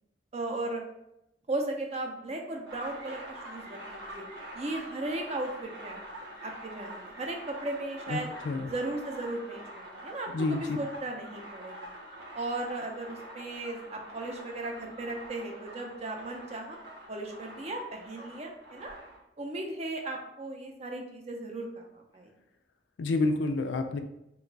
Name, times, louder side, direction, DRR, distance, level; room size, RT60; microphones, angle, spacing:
voice 1, 0.3-0.8 1.5-4.2 4.5-6.0 6.4-8.3 8.7-11.9 12.3-16.8 17.1-19.0 19.4-21.9 22.1-22.3, right 2 dB, 35° right, 2 dB, 0.5 m, -36 dB
sound 1, 2.7-19.2, right 1 dB, 80° right, 0.8 m, -45 dB
voice 2, 10.3-10.8 23.0-24.0, left 3 dB, 85° left, 7 dB, 0.4 m, -28 dB
3.0 x 2.3 x 3.9 m, 0.84 s
head